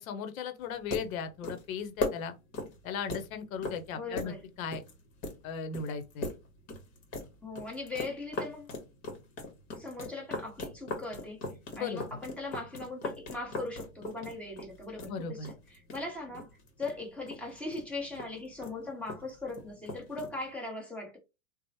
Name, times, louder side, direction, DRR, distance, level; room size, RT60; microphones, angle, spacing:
voice 1, 0.0-2.3 2.8-4.8 5.4-6.3 11.7-12.0 15.1-15.5, left 6 dB, 70° left, 0.8 m, -37 dB
sound 1, 0.6-20.5, left 2 dB, 40° left, 1.1 m, -41 dB
voice 2, 3.9-4.4 7.4-8.7 9.7-11.4 11.7-16.5 16.8-21.2, left 2 dB, 5° left, 1.0 m, -39 dB
2.9 x 2.1 x 2.7 m
hypercardioid pair, 120°, 43 cm